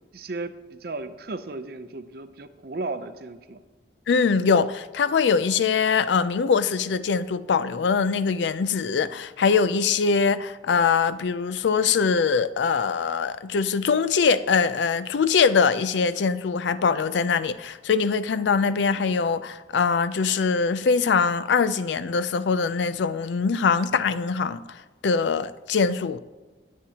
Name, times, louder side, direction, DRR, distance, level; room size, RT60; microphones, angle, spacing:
voice 1, 0.1-3.6, right 3 dB, 55° right, 0.6 m, -35 dB
voice 2, 4.1-26.2, left 5 dB, 75° left, 0.4 m, -23 dB
19.5 x 7.5 x 2.9 m
head